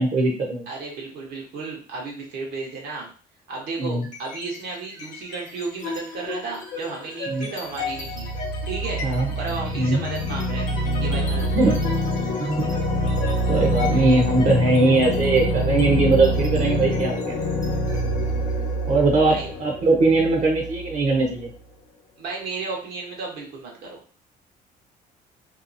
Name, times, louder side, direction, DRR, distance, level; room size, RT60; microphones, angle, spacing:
voice 1, 0.0-0.7 3.8-4.0 7.3-7.5 9.0-9.3 9.8-10.0 11.5-11.8 12.4-12.8 13.5-17.4 18.9-21.5, right 3 dB, 45° right, 0 dB, 0.7 m, -20 dB
voice 2, 0.7-3.1 3.5-8.3 8.7-9.0 9.3-10.7 11.0-11.9 19.3-19.5 22.2-24.0, right 4 dB, 75° right, -1 dB, 1.0 m, -33 dB
sound 1, 4.0-4.6 4.9-21.5, equal, 50° left, 0.9 m, -26 dB
2.8 x 2.3 x 2.6 m, 0.39 s
cardioid pair, 110°, 17 cm